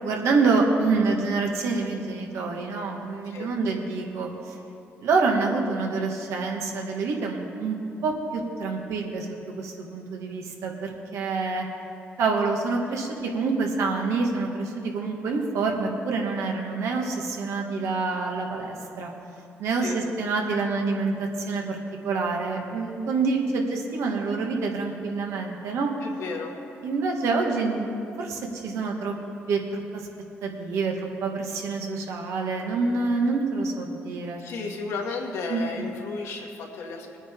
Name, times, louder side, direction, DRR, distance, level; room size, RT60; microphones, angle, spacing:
voice 1, 0.0-4.3 5.0-7.8 8.0-9.3 9.6-11.7 12.2-19.1 19.6-21.8 22.0-25.9 26.8-27.9 28.2-29.1 29.5-30.0 30.4-34.4 35.5-35.9, right 4 dB, 80° right, 1 dB, 1.8 m, -27 dB
voice 2, 19.7-20.0 26.0-26.5 34.4-37.2, left 4 dB, 80° left, -1 dB, 2.0 m, -34 dB
21.5 x 9.3 x 3.8 m, 2.7 s
supercardioid pair, 70°, 5 cm